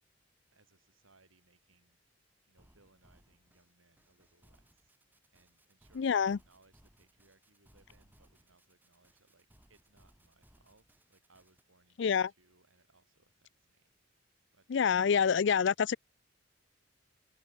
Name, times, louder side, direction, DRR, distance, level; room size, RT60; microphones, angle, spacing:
voice 1, 0.5-14.6 14.9-15.0, right 3 dB, 90° right, 6.1 m, -69 dB
sound 1, 2.5-11.6, right 1 dB, 10° right, 2.3 m, -66 dB
voice 2, 5.9-6.4 12.0-12.3 14.7-16.0, left 6 dB, 60° left, 0.4 m, -27 dB
head